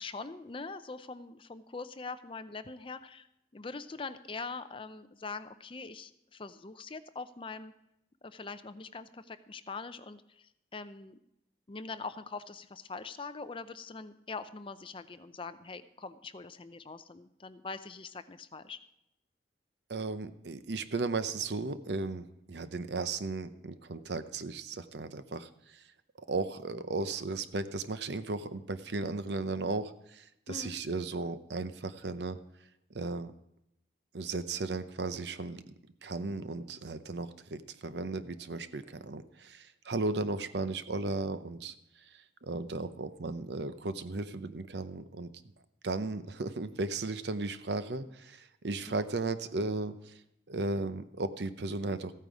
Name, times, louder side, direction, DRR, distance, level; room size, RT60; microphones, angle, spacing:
voice 1, 0.0-3.3 3.5-7.7 8.2-11.2 11.7-18.8 30.5-30.8 48.9-49.0, left 4 dB, 30° left, 12 dB, 0.6 m, -43 dB
voice 2, 19.9-25.8 26.2-32.4 32.9-33.3 34.1-35.7 36.0-45.3 45.8-50.2 50.5-52.1, right 3 dB, 70° right, 12 dB, 0.7 m, -35 dB
14.5 x 9.2 x 4.8 m, 0.80 s
head